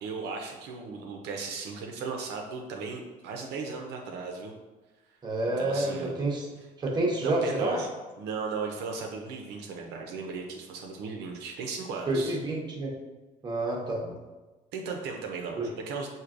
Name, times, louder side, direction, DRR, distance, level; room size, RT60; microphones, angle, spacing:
voice 1, 0.0-4.5 5.6-6.3 6.6-6.7 7.2-7.9 8.2-12.4 14.7-16.1, right 4 dB, 80° right, 2 dB, 0.5 m, -36 dB
voice 2, 5.2-6.5 6.8-7.8 12.1-12.9 13.4-14.2 15.6-15.7, right 2 dB, 25° right, -2 dB, 0.8 m, -29 dB
4.5 x 2.7 x 2.5 m, 1.2 s
cardioid pair, 110°, 17 cm